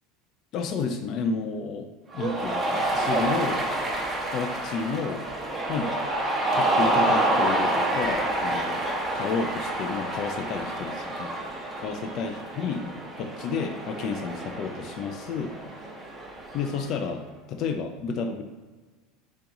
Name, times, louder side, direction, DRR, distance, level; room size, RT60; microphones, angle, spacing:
voice 1, 0.5-1.9 2.1-3.6 4.3-5.2 5.7-6.0 6.5-8.8 9.1-11.3 11.8-12.9 13.2-15.5 16.5-17.2 17.5-18.4, left 5 dB, 40° left, 4 dB, 0.6 m, -31 dB
Cheering, 2.1-17.0, right 1 dB, 15° right, 1.2 m, -28 dB
8.4 x 3.0 x 5.3 m, 1.3 s
supercardioid pair, 155°, 0 cm